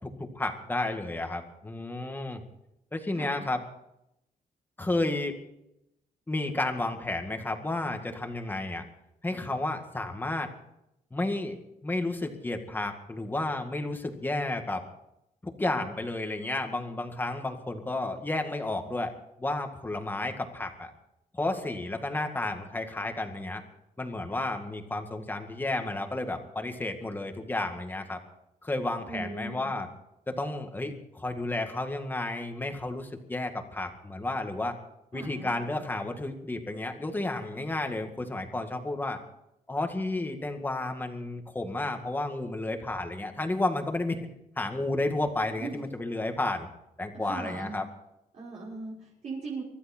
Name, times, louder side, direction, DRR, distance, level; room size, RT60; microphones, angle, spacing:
voice 1, 0.0-2.4 2.9-3.6 4.8-5.4 6.3-8.9 9.2-10.5 11.1-11.6 11.8-14.9 15.4-19.1 19.4-20.9 21.3-23.6 24.0-28.2 28.6-29.9 30.3-34.8 35.1-39.2 39.7-44.2 44.6-46.7 47.0-47.8, left 2 dB, 15° left, 5 dB, 1.9 m, -32 dB
voice 2, 3.1-3.5 29.1-29.7 35.1-35.5 45.6-45.8 47.2-47.8 48.3-49.6, right 3 dB, 50° right, -7 dB, 5.8 m, -39 dB
24.5 x 12.5 x 4.5 m, 0.83 s
cardioid pair, 150°, 15 cm